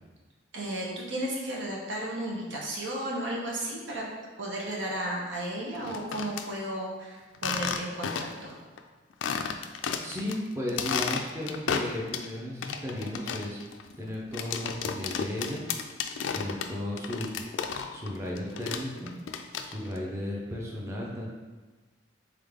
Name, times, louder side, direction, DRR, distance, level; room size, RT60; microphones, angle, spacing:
voice 1, 0.5-4.0 4.4-8.6, right 1 dB, 85° right, -3 dB, 1.0 m, -34 dB
sound 1, 5.8-6.5 7.3-8.5 8.8-8.9 9.2-10.4 10.7-12.3 12.6-18.1 18.4-20.0, left 6 dB, 85° left, 0.3 m, -33 dB
voice 2, 10.0-13.6 14.0-15.6 16.3-19.1 19.6-21.3, left 1 dB, 15° right, -3 dB, 0.6 m, -35 dB
3.7 x 3.5 x 3.5 m, 1.3 s
head